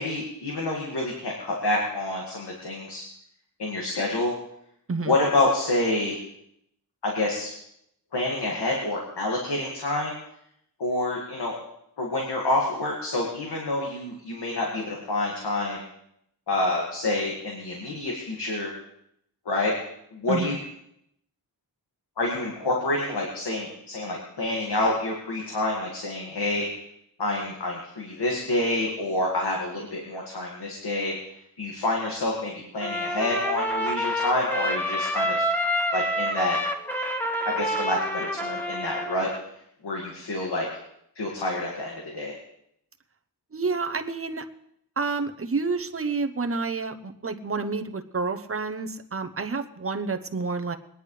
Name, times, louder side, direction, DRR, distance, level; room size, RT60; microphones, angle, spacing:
voice 1, 0.0-3.0 3.6-4.3 5.1-6.2 7.0-7.5 8.1-10.1 10.8-11.5 12.0-15.8 16.5-18.7 19.5-19.7 20.1-20.6 22.2-26.7 27.2-31.1 31.6-35.4 35.9-36.6 37.4-39.3 39.8-40.7 41.2-42.3, left 2 dB, 90° left, -2 dB, 2.2 m, -27 dB
Trumpet, 32.8-39.4, equal, 5° left, 1.0 m, -28 dB
voice 2, 43.5-44.4 45.0-50.8, right 4 dB, 35° right, 6 dB, 0.8 m, -29 dB
22.0 x 10.0 x 3.3 m, 0.76 s
wide cardioid pair, 100°, 39 cm